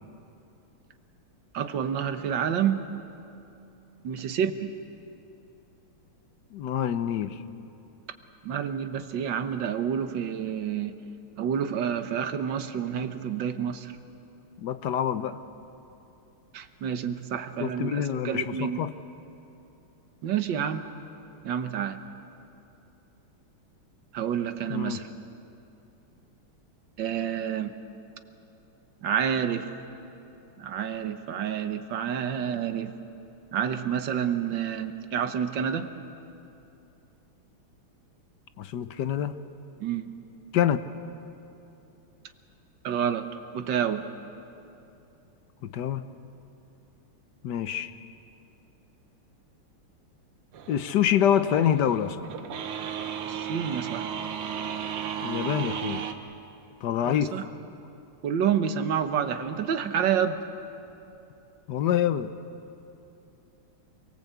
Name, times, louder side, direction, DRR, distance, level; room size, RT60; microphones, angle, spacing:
voice 1, 1.5-2.8 4.0-4.7 8.4-11.0 11.4-13.9 16.5-18.8 20.2-20.9 21.4-22.0 24.1-25.1 27.0-27.7 29.0-29.7 30.6-32.9 33.5-35.9 39.8-40.1 42.8-43.3 43.5-44.0 53.3-54.1 57.0-57.5 58.2-60.4, right 8 dB, 60° right, 8 dB, 1.7 m, -28 dB
voice 2, 6.5-7.4 14.6-15.4 17.6-18.9 24.7-25.0 38.6-39.4 40.5-40.8 45.6-46.0 47.4-47.9 50.7-52.3 55.2-56.0 56.8-57.3 61.7-62.3, left 9 dB, 60° left, 12 dB, 1.2 m, -26 dB
sound 1, 50.5-56.1, right 8 dB, 75° right, 2.0 m, -34 dB
26.0 x 23.0 x 8.2 m, 2.8 s
omnidirectional pair, 2.4 m